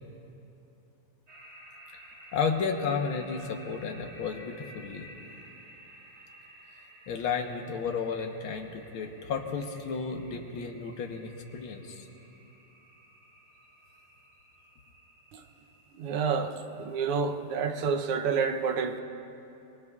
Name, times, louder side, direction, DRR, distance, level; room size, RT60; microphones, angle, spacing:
sound 1, 1.3-18.0, equal, 65° right, 3.9 m, -54 dB
voice 1, 2.3-5.1 7.1-12.1, left 5 dB, 70° left, 3 dB, 1.9 m, -32 dB
voice 2, 15.9-19.0, right 5 dB, 90° right, 7 dB, 1.8 m, -29 dB
25.0 x 22.0 x 2.4 m, 2.9 s
omnidirectional pair, 2.4 m